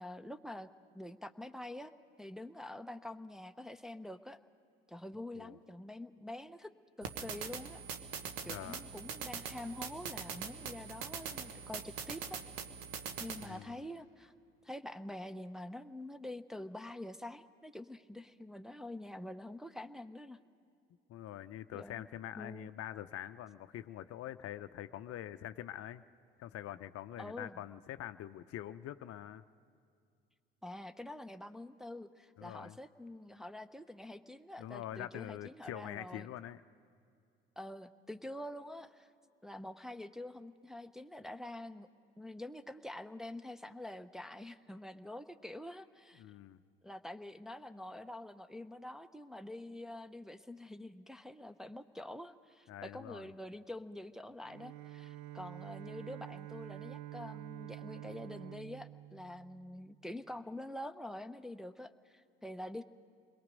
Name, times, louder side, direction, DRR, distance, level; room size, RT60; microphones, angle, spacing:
voice 1, 0.0-1.9 2.2-4.4 4.9-6.7 7.0-7.8 8.4-12.4 13.2-14.3 14.6-20.4 21.7-22.1 22.4-22.7 27.2-27.6 30.6-36.3 37.6-39.1 39.4-41.9 42.2-46.2 46.8-62.8, left 1 dB, ahead, 7 dB, 0.7 m, -46 dB
sound 1, 7.0-13.5, right 7 dB, 80° right, 1.3 m, -43 dB
voice 2, 8.4-8.8 13.4-13.8 21.1-26.0 26.4-29.4 32.4-32.8 34.6-36.6 46.2-46.6 52.7-53.2, left 12 dB, 50° left, 12 dB, 0.6 m, -45 dB
Bowed string instrument, 54.4-60.1, right 14 dB, 65° right, 0.5 m, -48 dB
28.5 x 22.0 x 5.3 m, 2.3 s
hypercardioid pair, 60°, 30 cm